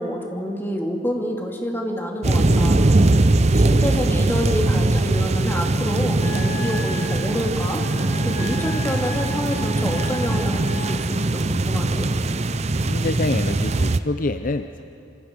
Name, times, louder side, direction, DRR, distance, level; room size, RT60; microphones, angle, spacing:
voice 1, 0.0-2.8 3.5-7.9 8.2-12.1, equal, 10° left, 0 dB, 2.5 m, -28 dB
sound 1, 2.2-14.0, right 2 dB, 35° right, 0.7 m, -21 dB
Wind instrument woodwind instrument, 6.2-11.1, left 3 dB, 30° left, 3.4 m, -36 dB
voice 2, 12.9-14.8, left 2 dB, 50° left, 8 dB, 0.6 m, -26 dB
27.5 x 26.0 x 5.3 m, 2.6 s
head